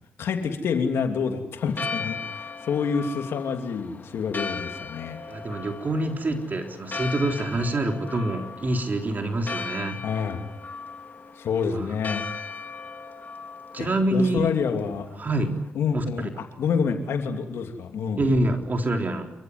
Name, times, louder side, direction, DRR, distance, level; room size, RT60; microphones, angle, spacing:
voice 1, 0.2-5.2 10.0-10.4 11.4-12.2 13.8-15.1 15.7-18.3, left 6 dB, 75° left, 5 dB, 2.9 m, -27 dB
Church bell, 1.6-15.7, left 4 dB, 45° left, 3.0 m, -38 dB
voice 2, 5.3-10.0 11.6-11.9 13.7-14.5 15.2-15.5 15.9-16.3 18.2-19.3, right 1 dB, 45° right, 4 dB, 3.7 m, -26 dB
28.5 x 14.5 x 9.7 m, 0.89 s
supercardioid pair, 50°, 4 cm